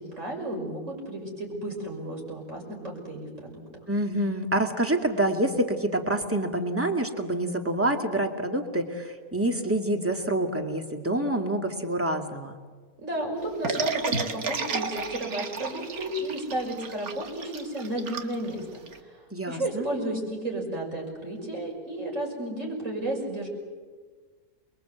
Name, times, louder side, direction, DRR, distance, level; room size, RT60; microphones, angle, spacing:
voice 1, 0.0-3.8 13.0-19.2 19.5-23.5, right 1 dB, 50° right, 0 dB, 6.4 m, -33 dB
voice 2, 3.9-12.5 19.3-19.9, right 1 dB, 10° right, 4 dB, 2.2 m, -27 dB
sound 1, 13.6-19.0, right 4 dB, 70° right, 2.1 m, -32 dB
28.5 x 22.5 x 8.1 m, 1.5 s
omnidirectional pair, 1.6 m